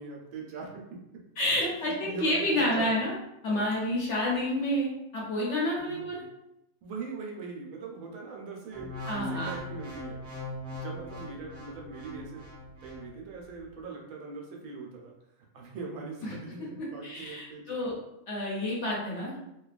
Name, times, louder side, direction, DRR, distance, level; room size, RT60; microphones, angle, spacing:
voice 1, 0.0-1.2 2.0-2.9 5.9-6.3 6.8-10.2 10.7-12.5 12.8-15.1 15.5-17.9, right 4 dB, 75° right, 0 dB, 1.0 m, -41 dB
voice 2, 1.4-3.1 3.4-6.2 9.1-9.5 16.8-18.0 18.3-19.4, left 1 dB, 60° left, -5 dB, 1.0 m, -29 dB
sound 1, 8.7-13.1 13.6-13.8, left 1 dB, 55° right, 0.6 m, -40 dB
2.6 x 2.2 x 2.4 m, 0.86 s
omnidirectional pair, 1.5 m